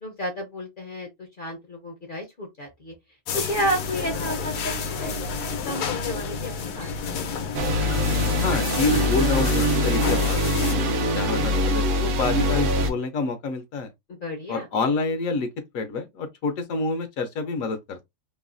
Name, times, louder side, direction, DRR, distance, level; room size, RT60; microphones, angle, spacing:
voice 1, 0.0-2.9 3.3-5.3 5.6-6.9 7.4-7.5 11.1-11.4 14.1-14.7, equal, 50° left, 0.6 m, -32 dB
sound 1, 3.3-10.7, left 5 dB, 90° left, 1.2 m, -30 dB
sound 2, 7.5-12.9, left 1 dB, 80° right, 0.4 m, -23 dB
voice 2, 8.4-10.4 10.7-10.8 11.1-13.9 14.5-15.5 15.7-18.0, left 3 dB, 70° left, 0.9 m, -27 dB
3.1 x 2.1 x 2.4 m
omnidirectional pair, 1.6 m